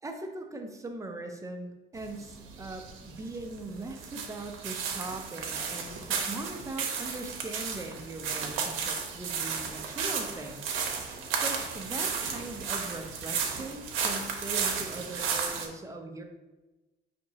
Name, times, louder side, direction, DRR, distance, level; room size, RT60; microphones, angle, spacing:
voice 1, 0.0-10.7 11.3-16.2, right 2 dB, 15° right, 4 dB, 0.6 m, -40 dB
sound 1, 2.0-15.7, right 6 dB, 90° right, 0.7 m, -34 dB
5.1 x 2.8 x 2.8 m, 1.1 s
cardioid pair, 90°, 20 cm